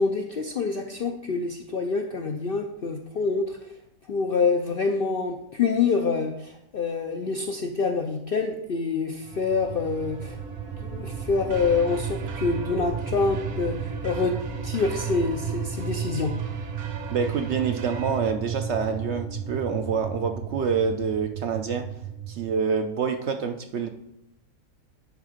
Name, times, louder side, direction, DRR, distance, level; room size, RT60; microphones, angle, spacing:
voice 1, 0.0-3.7 4.1-10.4 10.8-14.4 14.6-16.3, left 4 dB, 65° left, 4 dB, 0.5 m, -26 dB
sound 1, 9.2-22.5, right 6 dB, 35° right, 0.8 m, -33 dB
sound 2, 11.3-18.3, right 7 dB, 80° right, 1.2 m, -43 dB
voice 2, 17.1-21.9 22.3-23.9, right 6 dB, 65° right, 6 dB, 0.7 m, -27 dB
10.5 x 3.7 x 5.0 m, 0.82 s
omnidirectional pair, 1.6 m